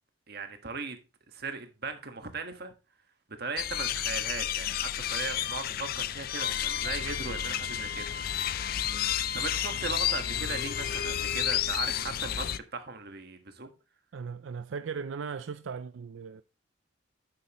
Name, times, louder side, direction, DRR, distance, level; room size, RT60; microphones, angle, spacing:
voice 1, 0.3-1.0 1.3-2.7 3.4-8.1 8.4-8.5 9.3-13.7, right 4 dB, 55° right, 1.5 m, -38 dB
sound 1, 3.6-12.6, left 11 dB, 50° left, 0.4 m, -31 dB
sound 2, 6.4-11.6, left 6 dB, 65° left, 1.9 m, -40 dB
voice 2, 14.1-16.4, right 5 dB, 75° right, 0.4 m, -37 dB
9.7 x 7.9 x 3.0 m
head